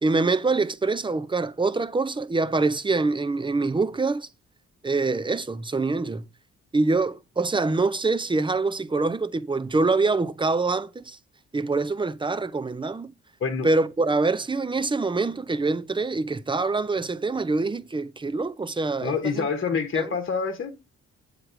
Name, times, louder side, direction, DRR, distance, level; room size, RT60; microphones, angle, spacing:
voice 1, 0.0-4.3 4.8-6.3 6.7-11.2 11.5-13.1 13.6-19.5 19.9-20.2, right 3 dB, 15° right, 0.6 m, -25 dB
voice 2, 19.0-20.8, left 5 dB, 40° left, 1.1 m, -27 dB
7.8 x 3.3 x 4.9 m
cardioid pair, 70°, 30 cm